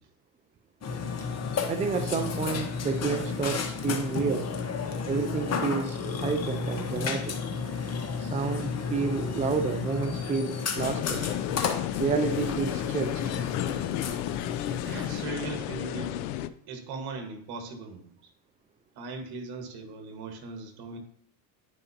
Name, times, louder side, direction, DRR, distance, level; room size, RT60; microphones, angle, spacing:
Burping eructation, 0.8-15.2, left 5 dB, 35° left, 1.2 m, -33 dB
voice 1, 1.7-4.5 5.0-7.4 8.2-11.2 12.0-13.2, right 5 dB, 15° right, 8 dB, 0.4 m, -30 dB
sound 1, 10.8-16.5, left 12 dB, 75° left, 0.6 m, -32 dB
voice 2, 14.7-16.1 16.7-18.1 19.0-21.0, right 4 dB, 55° right, 6 dB, 1.6 m, -39 dB
9.9 x 5.2 x 2.8 m, 0.62 s
supercardioid pair, 95°, 45 cm